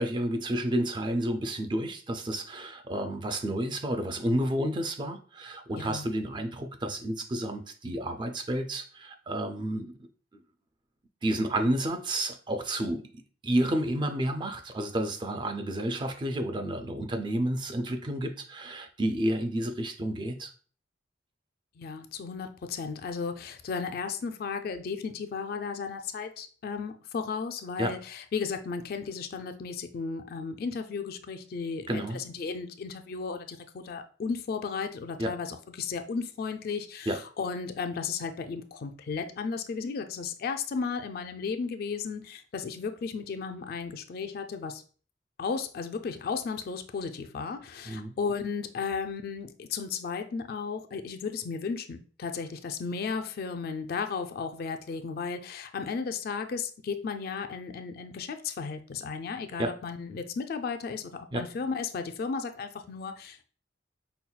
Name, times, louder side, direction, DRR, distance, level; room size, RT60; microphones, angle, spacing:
voice 1, 0.0-9.9 11.2-20.5 27.8-28.0 31.9-32.2 35.2-35.3 37.1-37.2 47.9-48.1 59.6-59.8 61.3-61.5, right 1 dB, 25° right, 7 dB, 0.4 m, -30 dB
voice 2, 5.7-6.1 21.8-44.8 45.4-63.5, left 5 dB, 55° left, 6 dB, 0.3 m, -34 dB
5.4 x 2.2 x 2.2 m, 0.41 s
head